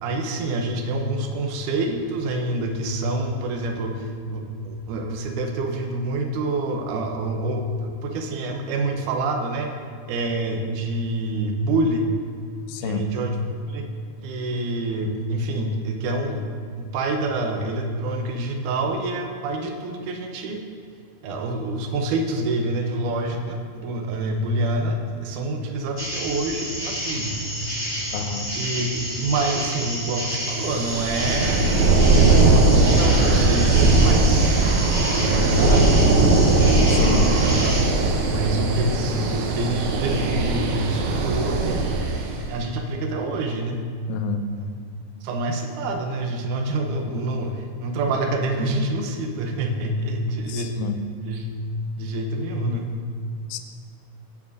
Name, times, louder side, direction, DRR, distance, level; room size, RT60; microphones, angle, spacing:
voice 1, 0.0-9.7 10.1-12.2 12.8-13.9 14.2-16.5 16.8-20.6 21.2-27.4 28.5-36.0 36.3-36.6 37.3-37.8 38.3-41.9 42.5-43.8 44.5-44.8 45.2-50.7 51.2-51.5 52.0-53.0, right 2 dB, 70° right, 3 dB, 2.2 m, -27 dB
voice 2, 12.7-13.0 28.1-28.5 36.9-37.3 44.1-44.4 50.5-51.0 53.5-53.6, left 7 dB, 80° left, 7 dB, 1.8 m, -29 dB
sound 1, 26.0-37.8, equal, 10° right, 1.6 m, -30 dB
sound 2, 30.7-42.4, right 2 dB, 90° right, 2.7 m, -19 dB
15.5 x 7.1 x 2.7 m, 2.2 s
omnidirectional pair, 4.1 m